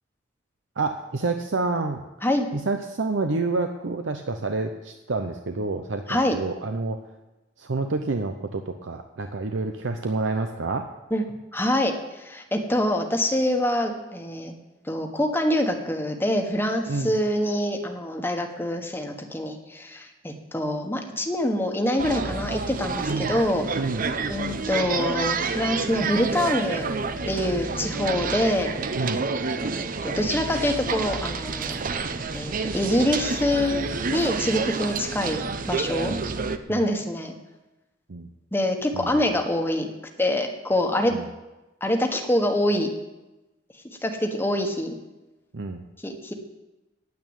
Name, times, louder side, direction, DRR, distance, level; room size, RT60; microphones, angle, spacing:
voice 1, 0.8-2.0 2.5-7.0 7.6-10.9 16.9-17.1 23.1-23.3 23.7-24.1 29.0-29.2 36.1-36.3 36.7-36.8 38.1-38.3 38.9-39.2 41.1-41.2 45.5-45.8, right 3 dB, 90° right, 6 dB, 0.7 m, -28 dB
voice 2, 11.5-14.5 14.9-23.7 24.3-26.9 27.3-28.7 29.7-31.8 32.3-36.2 36.7-37.4 38.5-39.9 40.2-41.1 41.8-42.9 44.0-45.0 46.0-46.3, left 1 dB, 10° left, 4 dB, 1.3 m, -25 dB
sound 1, 22.0-36.6, right 4 dB, 50° right, 0.6 m, -29 dB
9.5 x 8.6 x 8.9 m, 1.0 s
head